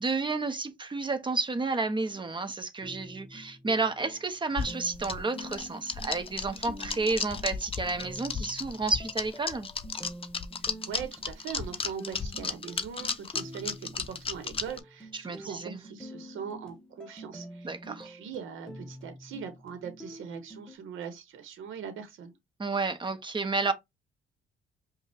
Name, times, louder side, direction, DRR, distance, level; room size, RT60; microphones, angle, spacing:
voice 1, 0.0-9.7 15.1-15.8 17.6-18.1 22.6-23.7, right 3 dB, 25° right, 0.9 m, -31 dB
sound 1, 2.8-20.7, equal, 5° left, 0.9 m, -47 dB
sound 2, 4.6-14.8, left 5 dB, 30° left, 0.6 m, -34 dB
voice 2, 10.8-22.4, right 7 dB, 80° right, 0.9 m, -41 dB
5.2 x 2.3 x 3.4 m
cardioid pair, 90°, 20 cm